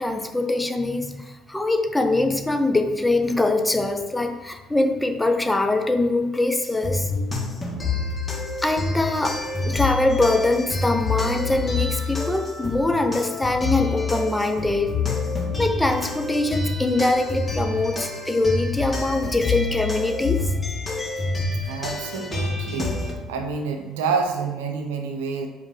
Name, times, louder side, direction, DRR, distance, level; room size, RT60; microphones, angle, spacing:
voice 1, 0.0-7.1 8.6-9.4 9.6-14.9 15.6-20.5, left 2 dB, 10° left, 6 dB, 0.8 m, -23 dB
sound 1, 6.6-23.1, left 3 dB, 25° left, 1.6 m, -27 dB
voice 2, 21.7-25.5, right 5 dB, 75° right, 5 dB, 0.7 m, -28 dB
7.3 x 4.9 x 3.4 m, 1.2 s
hypercardioid pair, 50°, 0 cm